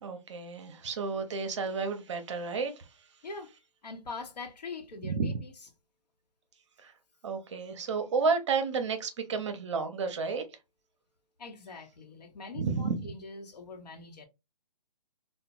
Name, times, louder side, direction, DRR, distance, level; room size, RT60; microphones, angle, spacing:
voice 1, 0.0-2.8 5.0-5.3 6.8-6.9 7.2-10.4 12.6-13.1, right 4 dB, 45° right, 0.6 m, -31 dB
voice 2, 3.8-5.5 11.4-14.3, left 4 dB, 80° left, 0.9 m, -43 dB
2.8 x 2.1 x 2.5 m
hypercardioid pair, 155°, 21 cm